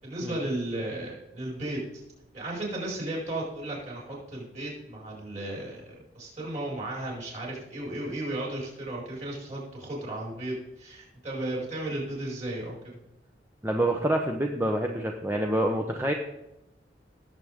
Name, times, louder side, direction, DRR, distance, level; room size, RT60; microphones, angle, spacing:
voice 1, 0.0-1.8 2.3-13.0, right 1 dB, 40° right, -3 dB, 5.2 m, -34 dB
voice 2, 13.6-16.1, right 1 dB, 10° right, 2 dB, 0.8 m, -27 dB
18.0 x 7.7 x 3.6 m, 0.90 s
head